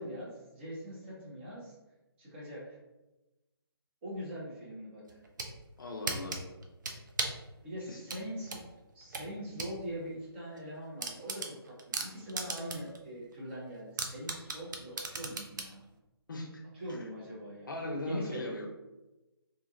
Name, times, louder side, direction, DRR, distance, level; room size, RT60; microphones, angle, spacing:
voice 1, 0.0-1.7 2.2-2.8 4.0-5.0 7.6-8.6 8.9-15.8 16.8-17.7 18.1-18.4, equal, 25° right, -6 dB, 0.9 m, -42 dB
sound 1, 5.1-5.5 6.1-7.5 8.1-9.7 10.1-10.2 10.6-10.7 11.0-13.0 13.3-13.4 14.0-15.7, right 4 dB, 45° right, 0.4 m, -36 dB
voice 2, 5.8-6.4 7.9-8.0 16.3-16.6 17.7-18.7, left 2 dB, 50° left, 1 dB, 0.5 m, -38 dB
2.4 x 2.3 x 2.8 m, 1.0 s
figure-of-eight pair, 145°, 14 cm